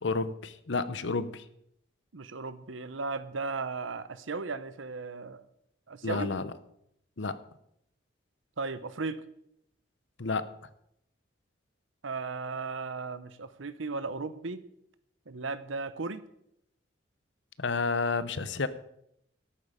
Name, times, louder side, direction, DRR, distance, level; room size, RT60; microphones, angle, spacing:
voice 1, 0.0-1.4 6.0-6.4 7.2-7.4 10.2-10.5 17.6-18.7, left 4 dB, 70° left, 14 dB, 0.8 m, -30 dB
voice 2, 2.1-5.4 5.9-6.3 8.6-9.2 12.0-14.6 15.3-16.2, right 4 dB, 85° right, 13 dB, 0.9 m, -36 dB
13.0 x 11.0 x 5.1 m, 0.75 s
head